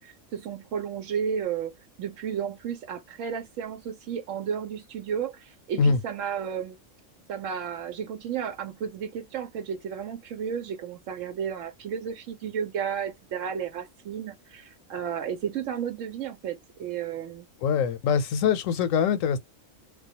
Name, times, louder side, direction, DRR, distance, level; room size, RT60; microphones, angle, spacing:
voice 1, 0.0-6.8 7.3-17.5, right 8 dB, 85° right, 1.0 m, -33 dB
voice 2, 17.6-19.4, left 6 dB, 85° left, 1.0 m, -23 dB
2.3 x 2.2 x 2.7 m
omnidirectional pair, 1.3 m